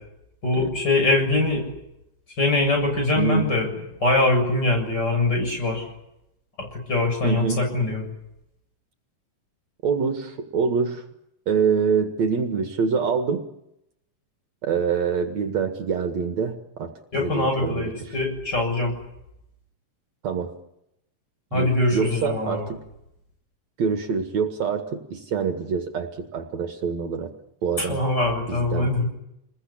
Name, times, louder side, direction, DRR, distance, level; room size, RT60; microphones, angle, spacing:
voice 1, 0.4-1.6 2.4-3.7 4.0-5.9 6.6-8.0 17.1-18.9 21.5-22.6 27.8-29.0, left 2 dB, 30° left, 2 dB, 7.9 m, -23 dB
voice 2, 7.2-7.6 9.8-11.0 11.5-13.4 14.6-16.9 17.2-17.9 20.2-20.5 21.5-22.8 23.8-27.3 27.6-28.0 28.5-29.0, right 6 dB, 60° right, 5 dB, 2.8 m, -25 dB
28.0 x 21.5 x 8.6 m, 0.85 s
omnidirectional pair, 3.7 m